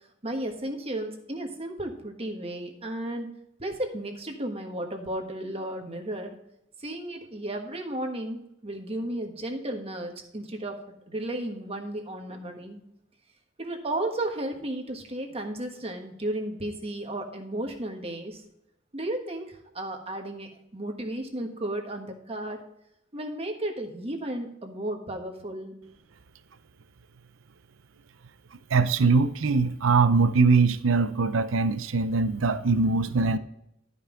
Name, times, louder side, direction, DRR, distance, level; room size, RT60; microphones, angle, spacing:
voice 1, 0.2-3.3 3.6-6.4 6.8-10.8 11.1-12.8 13.6-18.4 18.9-22.6 23.1-25.7, right 1 dB, 30° right, 3 dB, 1.4 m, -34 dB
voice 2, 28.7-33.4, right 4 dB, 85° right, 13 dB, 0.6 m, -22 dB
12.5 x 5.5 x 3.8 m, 0.79 s
head